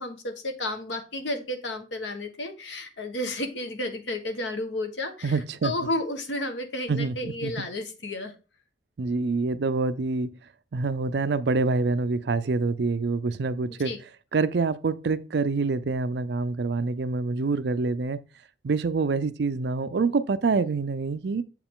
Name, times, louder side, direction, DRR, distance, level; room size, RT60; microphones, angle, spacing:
voice 1, 0.0-8.3 13.8-14.0, left 1 dB, 85° left, 1.3 m, -32 dB
voice 2, 5.2-5.7 6.9-7.7 9.0-10.3 10.7-13.9 14.3-18.2 18.6-21.4, right 4 dB, 65° right, 0.5 m, -26 dB
7.5 x 4.8 x 3.7 m
head